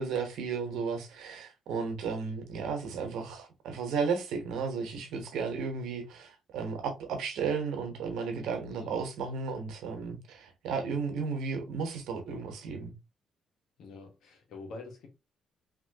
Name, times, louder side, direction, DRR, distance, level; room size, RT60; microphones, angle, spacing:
voice 1, 0.0-12.9, right 5 dB, 85° right, 1.0 m, -34 dB
voice 2, 13.8-15.1, left 3 dB, 75° left, 1.3 m, -46 dB
3.0 x 2.9 x 2.7 m
cardioid pair, 90°, 0 cm